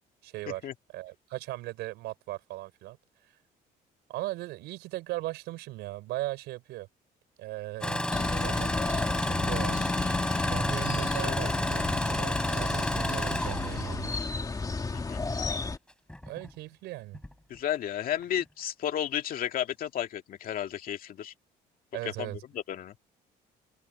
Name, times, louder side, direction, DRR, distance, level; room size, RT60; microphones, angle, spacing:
voice 1, 0.2-0.6 0.9-3.0 4.1-6.9 7.4-8.8 9.1-9.9 10.4-14.2 16.3-17.2 21.9-22.4, right 18 dB, 90° right, 5.4 m, -38 dB
Engine starting, 7.8-14.3 15.2-15.5 16.1-16.5 17.1-17.3, left 1 dB, 5° left, 3.9 m, -31 dB
sound 1, 8.1-15.8, left 4 dB, 20° left, 2.6 m, -32 dB
voice 2, 14.9-15.2 17.5-21.3 22.0-22.9, left 10 dB, 60° left, 2.3 m, -33 dB
cardioid pair, 110°, 17 cm